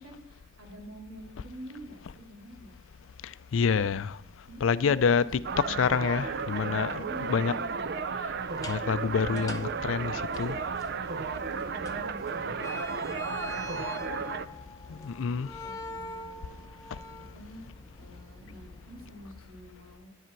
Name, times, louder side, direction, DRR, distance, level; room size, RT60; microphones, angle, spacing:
voice 1, 0.0-2.7 4.5-5.8 7.0-8.0 11.3-14.5 14.8-16.6 17.2-17.6 18.0-20.1, equal, 85° right, 2.8 m, -48 dB
voice 2, 3.5-4.2 4.6-7.5 8.2-8.3 8.7-10.6 14.9-15.5, left 6 dB, 70° left, 0.4 m, -27 dB
sound 1, 5.4-14.5, right 5 dB, 55° right, 0.5 m, -34 dB
sound 2, 8.5-19.4, left 3 dB, 15° left, 0.8 m, -44 dB
10.5 x 10.0 x 4.6 m
head